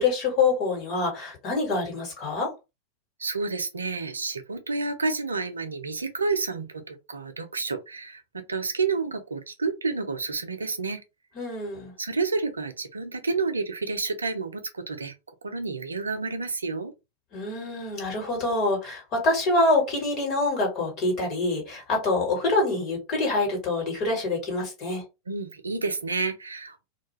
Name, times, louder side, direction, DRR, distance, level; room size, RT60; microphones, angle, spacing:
voice 1, 0.0-2.5 11.3-11.9 17.3-25.0, left 2 dB, 35° left, 1.4 m, -26 dB
voice 2, 3.2-11.0 12.0-15.2 15.4-16.9 25.3-26.9, right 4 dB, 75° right, 0.4 m, -30 dB
2.3 x 2.3 x 3.0 m
figure-of-eight pair, 90°, 0 cm